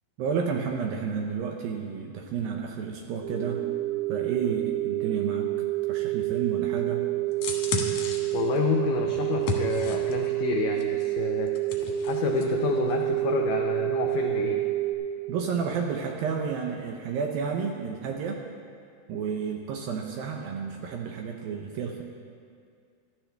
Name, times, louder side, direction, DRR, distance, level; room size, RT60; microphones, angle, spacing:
voice 1, 0.2-3.6 4.1-5.5 5.9-7.0 15.3-18.4 19.1-22.0, right 6 dB, 75° right, 2 dB, 2.2 m, -31 dB
sound 1, 3.2-14.9, right 17 dB, 15° right, 0.9 m, -28 dB
sound 2, 7.3-10.3 10.8-12.5 12.8-12.9, left 4 dB, 65° left, 1.8 m, -33 dB
voice 2, 8.3-11.5 12.0-14.6, left 7 dB, 85° left, 2 dB, 1.9 m, -29 dB
17.0 x 13.0 x 3.4 m, 2.2 s
omnidirectional pair, 4.9 m